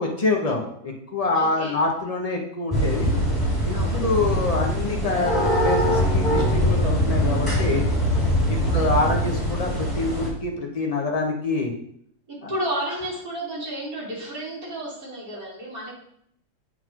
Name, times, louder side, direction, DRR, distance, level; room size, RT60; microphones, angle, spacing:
voice 1, 0.0-3.1 3.7-7.8 8.5-11.7 12.4-12.5, left 3 dB, 55° left, 0 dB, 0.4 m, -26 dB
voice 2, 1.3-1.7 3.7-4.0 8.6-8.9 12.3-15.9, right 1 dB, 45° right, -7 dB, 3.3 m, -32 dB
sound 1, 2.7-10.3, equal, 15° left, 2.5 m, -22 dB
8.3 x 4.1 x 4.6 m, 0.70 s
omnidirectional pair, 2.2 m